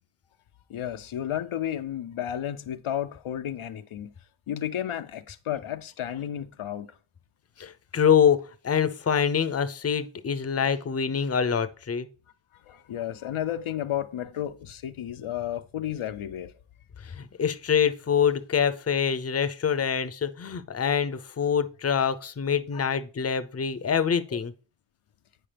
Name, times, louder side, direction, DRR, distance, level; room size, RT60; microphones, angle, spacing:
voice 1, 0.7-4.1 4.5-6.9 12.7-16.5 22.7-22.9 24.3-24.4, left 11 dB, 80° left, 0.6 m, -32 dB
voice 2, 7.6-12.1 17.0-24.5, left 7 dB, 30° left, 0.6 m, -25 dB
8.9 x 4.7 x 3.4 m
wide cardioid pair, 65°, 49 cm